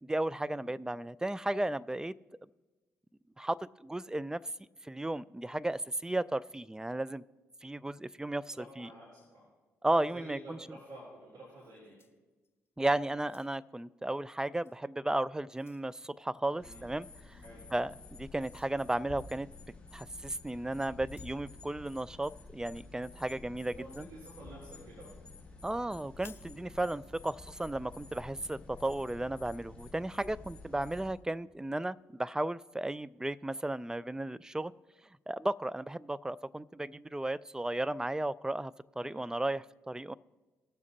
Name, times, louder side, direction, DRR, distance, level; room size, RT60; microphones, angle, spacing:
voice 1, 0.0-2.1 3.4-4.4 4.8-7.2 7.6-8.9 9.8-10.8 12.8-17.4 17.7-19.5 19.9-24.1 25.6-34.7 35.3-40.1, right 1 dB, 10° right, 17 dB, 0.3 m, -34 dB
voice 2, 8.5-9.4 10.1-12.0 16.5-16.9 17.4-17.6 23.7-25.1 39.0-39.2, right 2 dB, 65° right, -7 dB, 3.2 m, -50 dB
sound 1, 11.6-12.7 13.1-13.8 14.6-14.8 15.2-15.9 17.3-17.5 18.4-18.8 20.1-20.2 21.0-21.4 23.7-24.1 26.1-26.6, left 5 dB, 40° left, 0.8 m, -60 dB
sound 2, 16.6-31.1, left 3 dB, 15° left, 3.4 m, -51 dB
20.0 x 7.1 x 2.8 m, 1.2 s
hypercardioid pair, 40°, 7 cm